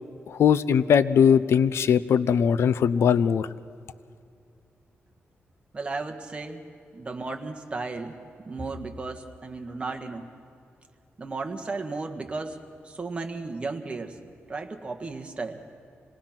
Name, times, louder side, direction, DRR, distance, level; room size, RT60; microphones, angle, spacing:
voice 1, 0.3-3.5, left 7 dB, 75° left, 16 dB, 0.6 m, -20 dB
voice 2, 5.7-6.7 6.9-10.2 11.2-14.2 14.5-15.6, right 3 dB, 25° right, 4 dB, 1.6 m, -34 dB
26.0 x 19.0 x 5.9 m, 2.4 s
cardioid pair, 115°, 4 cm